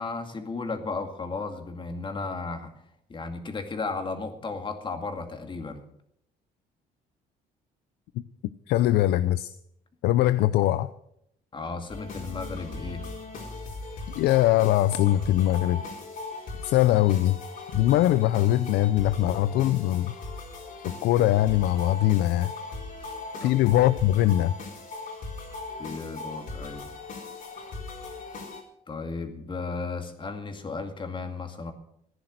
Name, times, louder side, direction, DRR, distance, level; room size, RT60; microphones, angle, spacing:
voice 1, 0.0-2.7 3.1-5.8 11.5-13.1 23.0-23.1 23.4-23.6 25.8-26.9 28.9-31.7, left 4 dB, 30° left, 6 dB, 2.2 m, -34 dB
voice 2, 8.7-9.5 10.0-10.9 14.1-15.8 16.6-17.4 17.7-20.1 20.8-22.5 23.4-24.5, left 14 dB, 80° left, 14 dB, 0.5 m, -22 dB
sound 1, 11.9-28.6, left 3 dB, 55° left, 4.0 m, -39 dB
15.0 x 10.5 x 6.6 m, 0.73 s
cardioid pair, 110°, 17 cm